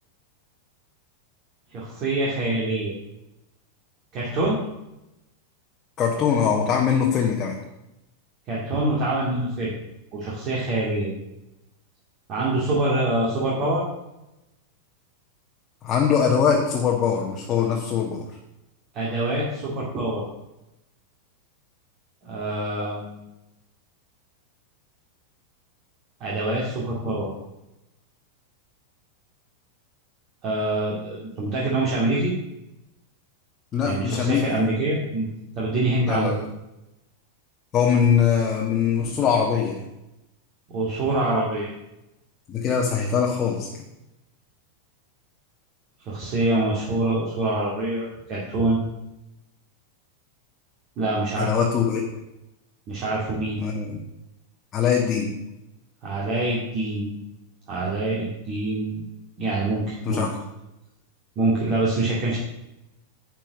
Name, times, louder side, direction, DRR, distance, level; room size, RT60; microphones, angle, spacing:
voice 1, 1.7-3.0 4.1-4.6 8.5-9.7 10.1-11.1 12.3-13.8 18.9-20.2 22.2-23.2 26.2-27.3 30.4-32.3 33.8-35.3 35.6-36.3 40.7-41.7 46.1-48.8 51.0-51.5 52.9-53.6 56.0-57.1 57.7-59.0 59.4-60.2 61.4-62.4, right 2 dB, 35° right, -5 dB, 2.3 m, -25 dB
voice 2, 6.0-7.6 15.8-18.2 33.7-34.4 36.1-36.4 37.7-39.8 42.5-43.7 51.4-52.0 53.6-54.0 54.7-55.3 60.0-60.3, left 7 dB, 25° left, -1 dB, 1.5 m, -22 dB
10.0 x 4.6 x 6.3 m, 0.92 s
figure-of-eight pair, 90°, 0 cm